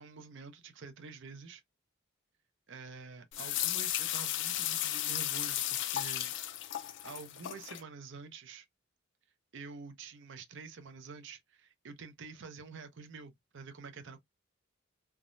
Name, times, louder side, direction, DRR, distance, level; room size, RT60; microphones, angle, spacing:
voice 1, 0.0-1.6 2.7-6.3 7.0-8.6 9.5-14.2, right 4 dB, 60° right, 0.6 m, -48 dB
sound 1, 3.3-7.8, left 12 dB, 60° left, 0.4 m, -34 dB
3.4 x 2.0 x 2.5 m
head